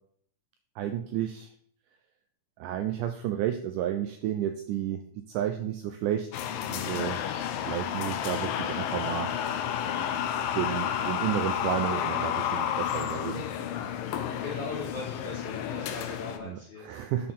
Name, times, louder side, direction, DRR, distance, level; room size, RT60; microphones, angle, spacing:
voice 1, 0.8-1.5 2.6-6.3 6.6-7.2 7.7-9.3 10.5-13.4 14.1-14.2 16.4-17.3, right 11 dB, 85° right, 7 dB, 1.8 m, -31 dB
sound 1, 6.3-16.4, left 9 dB, 80° left, 2.3 m, -31 dB
voice 2, 14.4-17.1, left 3 dB, 50° left, -7 dB, 1.5 m, -39 dB
11.0 x 4.3 x 3.7 m, 0.63 s
omnidirectional pair, 4.1 m